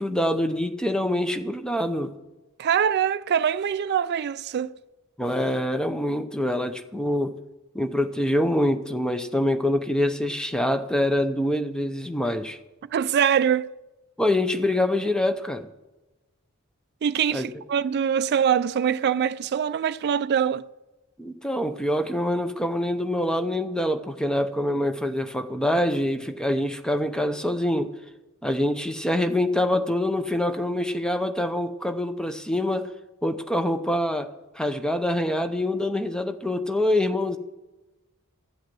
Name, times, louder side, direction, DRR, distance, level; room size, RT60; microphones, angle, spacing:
voice 1, 0.0-2.1 5.2-7.4 7.7-12.6 14.2-15.7 17.3-17.5 21.2-27.9 28.4-32.9 33.2-34.3 34.6-37.4, left 1 dB, 5° left, 0.7 m, -25 dB
voice 2, 2.6-4.8 12.9-13.7 17.0-20.6, right 8 dB, 50° right, 0.3 m, -23 dB
14.0 x 8.0 x 6.1 m
head